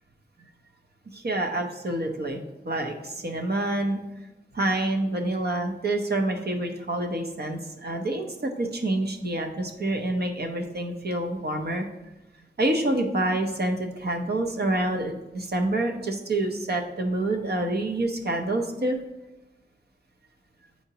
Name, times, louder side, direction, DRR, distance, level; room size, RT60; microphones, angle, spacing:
voice 1, 1.1-4.0 4.5-11.8 12.6-19.0, right 1 dB, 65° right, 3 dB, 0.8 m, -27 dB
8.1 x 4.3 x 2.9 m, 0.99 s
wide cardioid pair, 85°, 18 cm